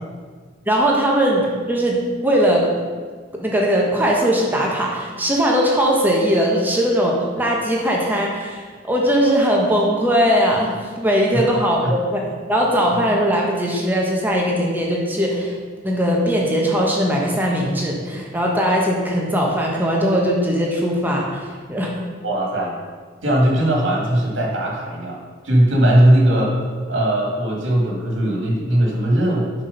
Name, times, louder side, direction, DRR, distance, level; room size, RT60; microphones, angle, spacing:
voice 1, 0.7-2.7 3.4-15.5 15.8-21.9, equal, 10° right, -2 dB, 1.0 m, -19 dB
voice 2, 22.2-22.7 23.2-26.5 26.9-29.5, right 1 dB, 65° right, -1 dB, 2.0 m, -18 dB
7.4 x 5.8 x 5.2 m, 1.5 s
head